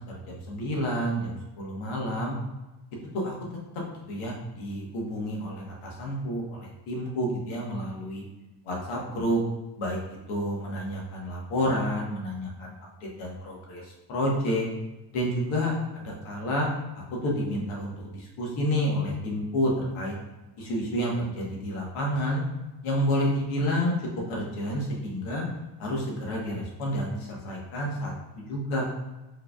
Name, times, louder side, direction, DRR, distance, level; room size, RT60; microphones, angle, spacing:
voice 1, 0.0-2.3 3.1-3.3 4.1-8.2 8.6-9.4 9.8-10.0 10.3-12.7 13.0-14.6 15.1-16.7 17.2-20.1 20.6-22.4 22.8-25.5 25.8-28.9, equal, 75° left, -2 dB, 1.3 m, -29 dB
4.6 x 3.3 x 2.3 m, 1.0 s
cardioid pair, 95°, 49 cm